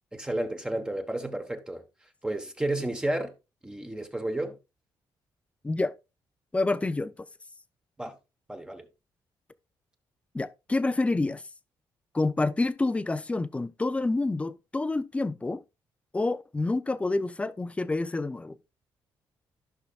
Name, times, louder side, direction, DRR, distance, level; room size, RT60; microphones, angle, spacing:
voice 1, 0.2-1.8 2.2-3.3 3.6-4.6 8.0-8.1 8.5-8.9, right 1 dB, 10° right, 1.2 m, -31 dB
voice 2, 6.5-7.1 10.3-11.4 12.1-15.6 16.1-18.6, left 2 dB, 15° left, 0.6 m, -28 dB
14.5 x 5.7 x 2.4 m
cardioid pair, 115°, 8 cm